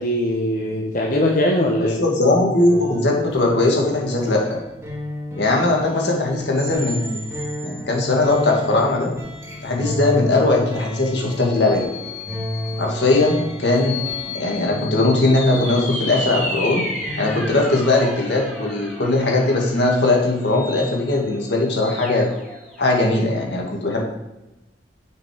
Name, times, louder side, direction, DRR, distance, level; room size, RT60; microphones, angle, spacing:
voice 1, 0.0-2.0, left 1 dB, 50° left, -2 dB, 1.0 m, -21 dB
voice 2, 1.8-4.6 5.4-7.2 7.6-9.1 9.6-11.9 12.8-14.0 14.3-16.8 17.2-22.3 22.8-24.0, left 2 dB, 75° left, 0 dB, 2.0 m, -19 dB
sound 1, 2.6-17.8, left 1 dB, 15° right, 1.8 m, -33 dB
sound 2, 6.5-8.5 9.0-9.1 11.1-22.8, left 2 dB, 5° left, 2.0 m, -33 dB
7.0 x 5.7 x 5.0 m, 0.97 s
head